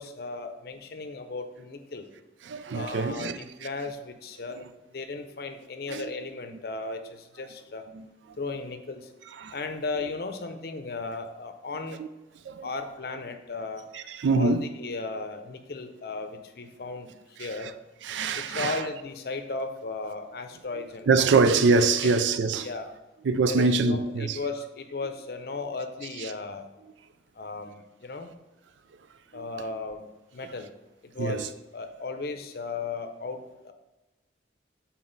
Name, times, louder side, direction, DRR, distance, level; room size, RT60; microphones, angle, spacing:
voice 1, 0.0-2.1 2.7-7.8 8.4-9.1 9.5-12.0 12.6-13.9 14.3-17.1 17.4-17.7 18.3-21.3 22.6-22.9 23.5-26.7 27.4-28.3 29.3-30.1 30.3-30.7 31.0-33.7, left 3 dB, 55° left, 0.6 m, -36 dB
voice 2, 2.5-3.4 5.9-6.1 7.9-8.1 9.4-9.5 12.0-12.1 12.5-12.7 13.9-14.6 18.0-18.8 21.1-22.7 23.3-24.4 31.2-31.5, right 4 dB, 80° right, 0.4 m, -24 dB
6.0 x 4.1 x 3.9 m
head